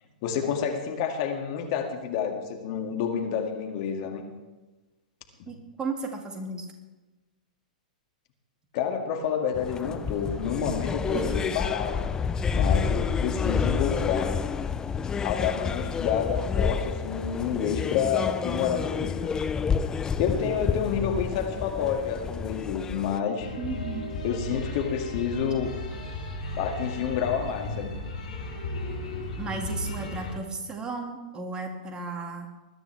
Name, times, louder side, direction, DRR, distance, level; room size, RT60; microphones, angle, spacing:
voice 1, 0.2-4.2 5.4-5.5 8.7-12.2 12.5-14.4 15.2-19.3 20.2-23.5 24.2-25.8 26.6-27.9, left 7 dB, 45° left, 4 dB, 2.2 m, -29 dB
voice 2, 5.5-6.7 11.1-11.2 23.6-24.1 29.4-32.5, right 4 dB, 20° right, 3 dB, 2.1 m, -34 dB
sound 1, 9.6-23.2, left 6 dB, 15° left, 0.5 m, -29 dB
sound 2, 23.4-30.3, left 2 dB, 65° left, 4.3 m, -35 dB
21.0 x 13.0 x 3.5 m, 1.2 s
figure-of-eight pair, 105°, 4 cm